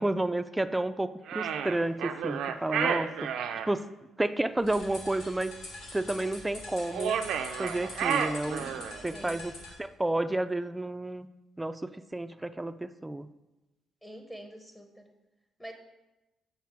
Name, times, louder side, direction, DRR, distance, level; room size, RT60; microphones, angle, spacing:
voice 1, 0.0-3.3 3.7-3.9 4.2-5.6 5.9-7.2 7.6-11.3 11.6-13.3, right 1 dB, 10° right, 12 dB, 0.3 m, -31 dB
sound 1, 1.3-3.7 6.9-9.0, right 8 dB, 80° right, 0.4 m, -31 dB
sound 2, 4.6-9.8, left 2 dB, 85° left, 1.6 m, -44 dB
voice 2, 8.8-9.5 14.0-15.1 15.6-15.7, equal, 10° left, 4 dB, 0.7 m, -47 dB
8.4 x 4.0 x 4.7 m, 1.0 s
cardioid pair, 90°, 0 cm